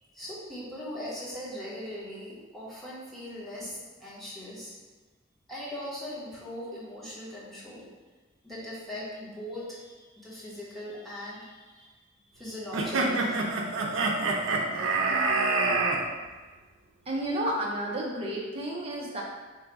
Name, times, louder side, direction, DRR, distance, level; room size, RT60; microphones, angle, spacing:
voice 1, 0.1-4.7 5.5-7.9 8.4-11.9 12.3-13.5, left 1 dB, ahead, -9 dB, 1.2 m, -40 dB
sound 1, 12.7-16.0, right 3 dB, 75° right, 0.6 m, -26 dB
voice 2, 17.1-19.2, right 1 dB, 30° right, -3 dB, 0.6 m, -31 dB
3.9 x 2.6 x 4.6 m, 1.3 s
head